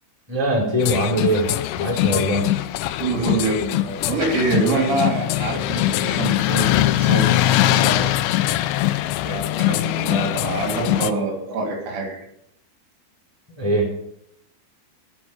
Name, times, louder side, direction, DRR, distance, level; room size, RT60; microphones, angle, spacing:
voice 1, 0.3-2.5 13.5-13.9, right 1 dB, 5° right, -1 dB, 3.4 m, -22 dB
sound 1, 0.8-11.1, left 14 dB, 80° left, 2.5 m, -22 dB
voice 2, 3.0-8.2 9.2-12.2, right 3 dB, 85° right, 1 dB, 5.5 m, -25 dB
17.0 x 6.2 x 7.4 m, 0.74 s
omnidirectional pair, 5.4 m